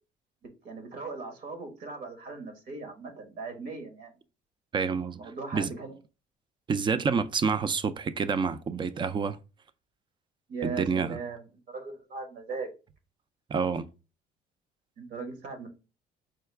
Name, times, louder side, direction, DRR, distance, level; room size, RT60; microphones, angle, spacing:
voice 1, 0.6-4.1 5.2-6.0 10.5-12.7 15.0-15.7, right 4 dB, 70° right, 1.3 m, -39 dB
voice 2, 4.7-5.2 5.5-5.7 6.7-9.4 10.6-11.2 13.5-13.9, right 5 dB, 30° right, 0.4 m, -28 dB
4.7 x 2.2 x 3.3 m
cardioid pair, 110°, 17 cm